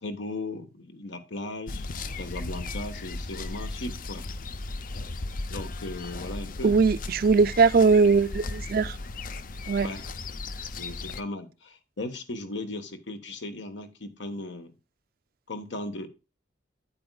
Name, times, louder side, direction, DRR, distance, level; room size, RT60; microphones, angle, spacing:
voice 1, 0.0-1.9 2.2-4.3 5.5-6.8 9.8-10.1 10.7-14.7 15.5-16.1, left 2 dB, 75° left, 1.2 m, -37 dB
sound 1, 1.7-11.2, left 3 dB, 45° left, 0.5 m, -36 dB
voice 2, 6.6-9.0 9.7-9.9, right 4 dB, 50° right, 0.4 m, -20 dB
9.3 x 8.7 x 2.3 m
head